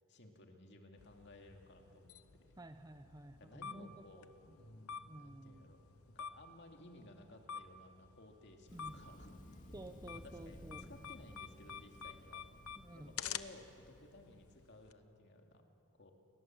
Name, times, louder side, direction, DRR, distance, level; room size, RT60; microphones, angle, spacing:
voice 1, 0.1-2.6 3.4-4.3 4.6-5.8 6.1-9.3 10.1-12.4 13.0-15.7 16.0-16.1, left 1 dB, 50° left, 3 dB, 2.4 m, -57 dB
sound 1, 1.0-14.9, left 8 dB, 80° left, 0.9 m, -50 dB
voice 2, 2.6-3.9 5.1-5.7 8.7-9.0 9.7-10.9 12.8-13.2, right 1 dB, 15° right, 9 dB, 0.7 m, -52 dB
Thunder, 8.7-14.5, equal, 35° left, 2.5 m, -57 dB
30.0 x 21.0 x 7.6 m, 3.0 s
head